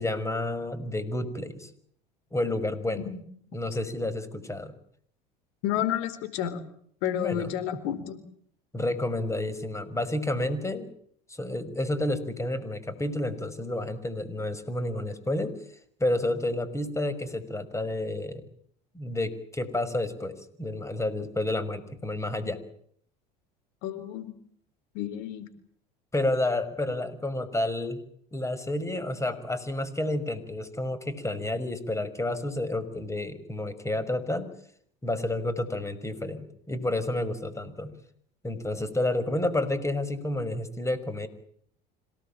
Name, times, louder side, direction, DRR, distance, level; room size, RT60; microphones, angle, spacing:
voice 1, 0.0-1.7 2.3-3.1 3.5-4.7 7.1-7.5 8.7-10.9 11.3-15.5 16.0-18.4 18.9-20.3 20.6-22.6 26.1-28.0 28.3-34.5 35.0-37.9 38.4-41.3, left 1 dB, 15° left, 14 dB, 5.8 m, -30 dB
voice 2, 5.6-6.6 7.0-8.2 23.8-24.3 24.9-25.5, left 11 dB, 70° left, 13 dB, 4.0 m, -30 dB
27.0 x 18.5 x 8.9 m, 0.62 s
hypercardioid pair, 85°, 21 cm